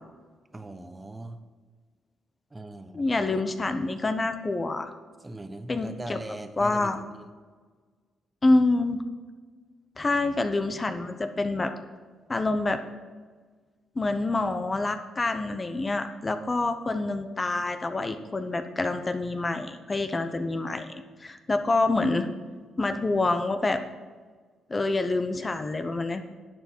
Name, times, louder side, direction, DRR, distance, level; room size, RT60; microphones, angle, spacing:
voice 1, 0.5-1.4 2.5-3.4 5.2-7.3, right 2 dB, 20° right, 9 dB, 1.0 m, -40 dB
voice 2, 2.9-4.9 5.7-6.2 6.6-7.0 8.4-9.0 10.0-11.7 12.3-12.8 14.0-22.3 22.8-23.8 24.7-26.2, left 2 dB, 25° left, 8 dB, 0.8 m, -27 dB
11.0 x 8.3 x 4.6 m, 1.4 s
cardioid pair, 90°, 0 cm